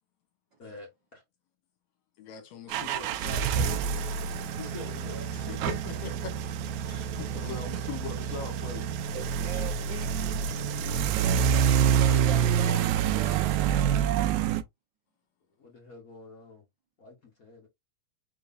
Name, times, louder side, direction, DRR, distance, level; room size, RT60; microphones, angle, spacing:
voice 1, 0.6-1.2 4.6-5.7 9.8-10.6 15.6-16.6 17.0-17.7, left 3 dB, 45° left, 1.2 m, -46 dB
voice 2, 2.2-3.8 5.7-6.3 6.8-8.9, left 7 dB, 70° left, 2.2 m, -41 dB
sound 1, 2.7-14.6, right 8 dB, 80° right, 1.9 m, -27 dB
voice 3, 9.1-10.1 11.1-13.4, right 6 dB, 60° right, 1.3 m, -41 dB
4.8 x 3.8 x 2.6 m
omnidirectional pair, 3.3 m